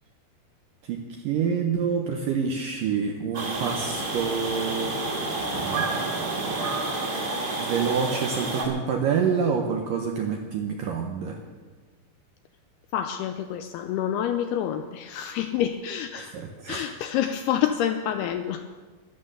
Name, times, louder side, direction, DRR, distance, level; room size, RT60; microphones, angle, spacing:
voice 1, 0.8-5.0 5.5-6.8 7.6-11.4 16.2-16.9, right 6 dB, 80° right, 3 dB, 2.0 m, -28 dB
sound 1, 3.3-8.7, right 2 dB, 30° right, 2.1 m, -29 dB
voice 2, 12.9-16.3 16.7-18.6, left 10 dB, 85° left, 8 dB, 2.3 m, -28 dB
14.0 x 11.5 x 6.7 m, 1.4 s
omnidirectional pair, 5.1 m